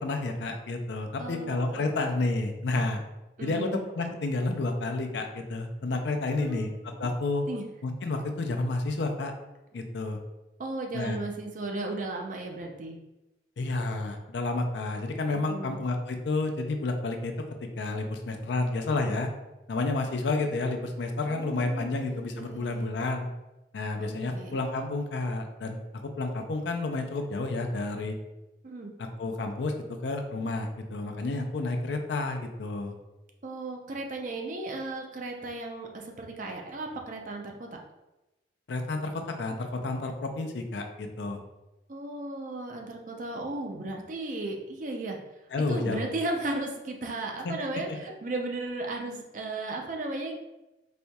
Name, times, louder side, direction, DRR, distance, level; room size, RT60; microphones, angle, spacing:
voice 1, 0.0-3.0 3.4-7.4 7.8-9.3 9.7-10.2 10.9-11.2 13.6-17.3 17.8-19.3 19.7-23.3 23.7-28.2 29.0-32.9 38.7-41.4 45.5-46.1 47.4-47.5, left 2 dB, 85° left, 5 dB, 0.4 m, -30 dB
voice 2, 1.2-1.8 3.4-3.8 6.3-7.1 7.5-7.6 10.6-13.0 15.5-15.8 21.2-22.9 24.0-24.6 28.6-28.9 33.4-37.8 41.9-45.2 45.7-50.3, right 2 dB, 45° right, 2 dB, 0.5 m, -35 dB
4.3 x 2.7 x 2.2 m, 1.0 s
head